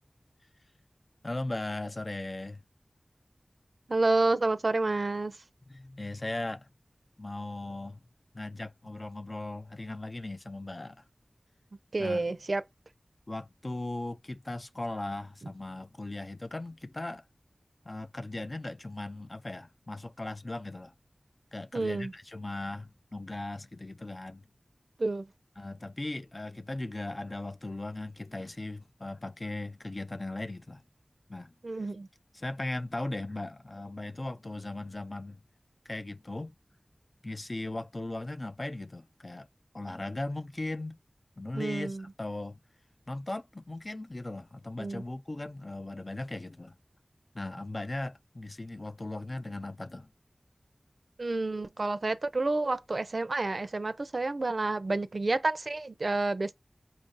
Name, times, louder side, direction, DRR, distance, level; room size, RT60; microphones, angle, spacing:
voice 1, 1.2-2.6 5.7-6.7 7.2-8.0 8.3-11.0 12.0-12.4 13.3-17.2 17.9-20.9 21.5-24.5 25.6-30.8 31.3-31.5 32.3-35.4 35.9-36.5 37.2-39.5 39.7-41.0 41.4-42.6 43.1-46.7 47.3-50.1, left 2 dB, 40° left, 0.5 m, -38 dB
voice 2, 3.9-5.3 11.9-12.6 21.7-22.1 25.0-25.2 31.6-32.1 41.5-42.0 44.8-45.0 51.2-56.5, right 2 dB, 65° right, 0.5 m, -29 dB
5.1 x 2.5 x 3.9 m
wide cardioid pair, 70°, 0 cm